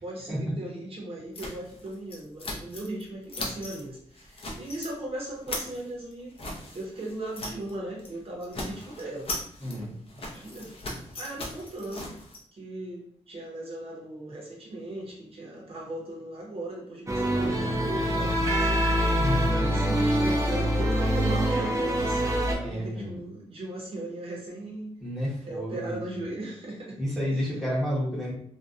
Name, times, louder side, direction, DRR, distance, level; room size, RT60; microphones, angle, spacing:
voice 1, 0.0-6.3 6.7-9.3 9.6-12.1 12.5-18.8 19.3-24.9 25.4-27.0 27.3-27.6, right 1 dB, 55° right, -3 dB, 0.8 m, -38 dB
sound 1, 1.3-3.0 3.3-3.8 4.2-4.9 5.2-7.7 8.0-8.2 8.4-12.4, left 2 dB, 50° left, 0.5 m, -38 dB
sound 2, 17.1-22.6, equal, 25° right, 0.4 m, -25 dB
voice 2, 19.1-19.7 22.6-23.1 25.0-26.0 27.0-28.3, equal, ahead, -7 dB, 0.8 m, -30 dB
2.6 x 2.1 x 2.3 m, 0.63 s
wide cardioid pair, 170°, 12 cm